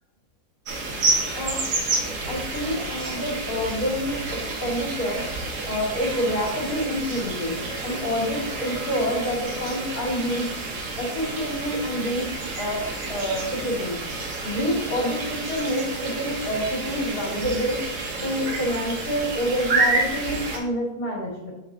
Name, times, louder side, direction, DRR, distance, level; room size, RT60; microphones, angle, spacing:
sound 1, 0.6-20.6, right 3 dB, 60° right, 1.7 m, -29 dB
voice 1, 2.3-5.3 5.6-10.5 11.0-12.3 12.6-12.8 13.1-14.0 14.4-17.8 18.2-21.5, equal, 55° left, -3 dB, 2.5 m, -27 dB
8.3 x 6.4 x 2.7 m, 0.90 s
omnidirectional pair, 1.9 m